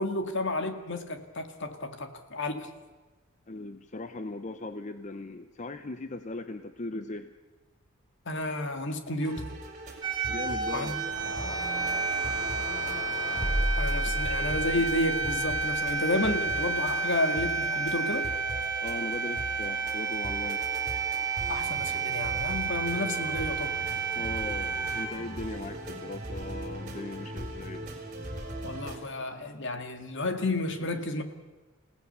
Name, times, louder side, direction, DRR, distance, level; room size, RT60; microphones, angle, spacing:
voice 1, 0.0-2.7 8.3-9.5 10.7-11.0 13.8-18.3 21.5-23.7 28.6-31.2, left 2 dB, 60° left, 7 dB, 2.1 m, -31 dB
voice 2, 3.5-7.3 10.3-11.2 14.1-14.2 18.8-20.6 24.1-27.9, left 2 dB, 35° left, 9 dB, 0.8 m, -39 dB
sound 1, 9.2-29.0, right 1 dB, 35° right, 4.5 m, -40 dB
sound 2, 10.0-25.1, right 4 dB, 20° right, 2.9 m, -31 dB
sound 3, 11.1-16.4, equal, 20° left, 4.2 m, -35 dB
29.5 x 17.0 x 6.8 m, 1.2 s
head